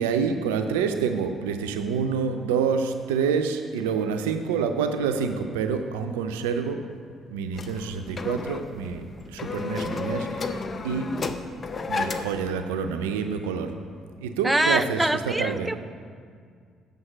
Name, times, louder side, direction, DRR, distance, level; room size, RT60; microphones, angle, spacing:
voice 1, 0.0-6.8 7.3-9.0 9.3-10.6 10.8-11.1 11.9-13.7 14.2-15.0 15.3-15.7, right 6 dB, 85° right, 7 dB, 0.5 m, -27 dB
sound 1, 7.5-12.5, left 4 dB, 40° left, 0.6 m, -32 dB
voice 2, 14.4-15.8, right 1 dB, 10° right, 10 dB, 0.4 m, -24 dB
7.9 x 5.3 x 7.3 m, 2.1 s
hypercardioid pair, 50°, 0 cm